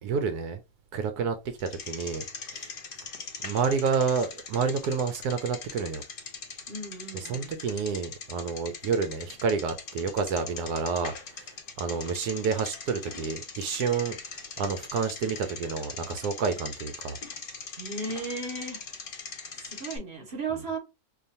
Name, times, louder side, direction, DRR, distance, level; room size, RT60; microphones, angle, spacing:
voice 1, 0.0-0.6 0.9-2.2 2.5-2.7 3.4-6.0 7.1-17.2, right 5 dB, 80° right, 1.2 m, -29 dB
Bicycle, 1.6-20.0, left 5 dB, 45° left, 0.8 m, -41 dB
voice 2, 6.7-7.6 17.8-18.8 19.6-20.8, right 3 dB, 40° right, 1.5 m, -35 dB
4.7 x 2.6 x 2.7 m
omnidirectional pair, 1.6 m